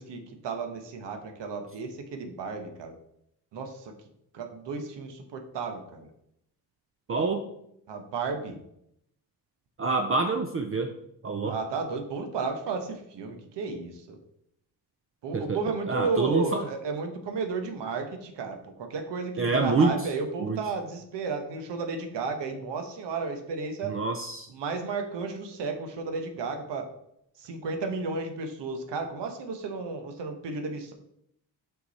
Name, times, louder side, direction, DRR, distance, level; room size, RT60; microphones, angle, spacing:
voice 1, 0.0-2.9 3.5-3.9 4.3-6.1 7.9-8.6 11.4-14.2 15.2-23.9 24.5-26.9 27.4-30.9, right 4 dB, 90° right, 5 dB, 1.2 m, -33 dB
voice 2, 7.1-7.4 9.8-10.9 11.2-11.6 15.3-15.6 15.9-16.7 19.4-19.9 20.4-20.6 23.8-24.5, right 3 dB, 35° right, 5 dB, 0.4 m, -26 dB
6.1 x 5.7 x 4.2 m, 0.76 s
wide cardioid pair, 165°, 41 cm